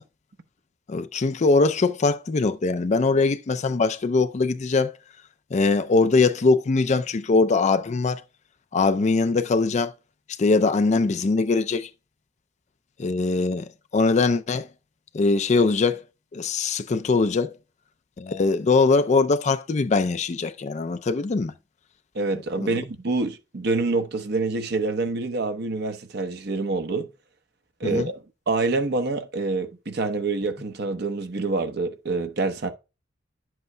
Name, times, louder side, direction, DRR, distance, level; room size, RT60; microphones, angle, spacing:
voice 1, 0.9-5.0 5.5-8.2 8.7-9.9 10.3-11.9 13.0-14.7 15.1-16.0 16.3-17.6 18.2-21.5 22.6-22.8 27.8-28.1, left 3 dB, 35° left, 0.4 m, -22 dB
voice 2, 22.1-27.1 27.8-28.1 28.5-32.7, right 3 dB, 55° right, 0.8 m, -26 dB
11.0 x 7.8 x 2.2 m
head